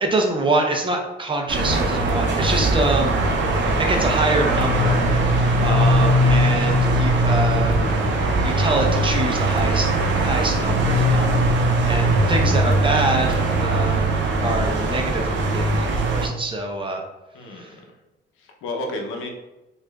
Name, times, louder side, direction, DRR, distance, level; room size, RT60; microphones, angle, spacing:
voice 1, 0.0-3.2 3.8-5.1 5.6-7.8 8.4-9.9 10.2-11.3 11.9-14.1 14.4-17.0 17.5-17.7, right 2 dB, 25° right, 2 dB, 0.6 m, -25 dB
sound 1, 1.5-16.3, right 1 dB, 65° right, 0.6 m, -20 dB
voice 2, 3.0-3.9 17.3-17.8 18.4-19.3, left 2 dB, 90° left, 2 dB, 0.7 m, -33 dB
4.8 x 2.5 x 2.3 m, 0.99 s
cardioid pair, 90°, 20 cm